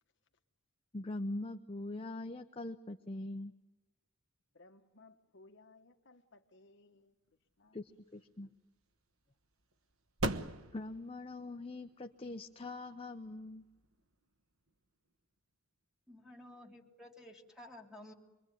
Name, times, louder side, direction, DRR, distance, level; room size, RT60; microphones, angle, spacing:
voice 1, 0.9-3.5 7.7-8.5 10.7-13.6, left 2 dB, 25° left, 0.8 m, -42 dB
voice 2, 4.5-7.1 7.6-7.8, left 2 dB, 60° left, 1.4 m, -61 dB
sound 1, 7.6-14.9, right 2 dB, 85° right, 1.3 m, -44 dB
voice 3, 16.1-18.1, left 1 dB, 5° right, 3.3 m, -53 dB
25.5 x 23.5 x 9.3 m
head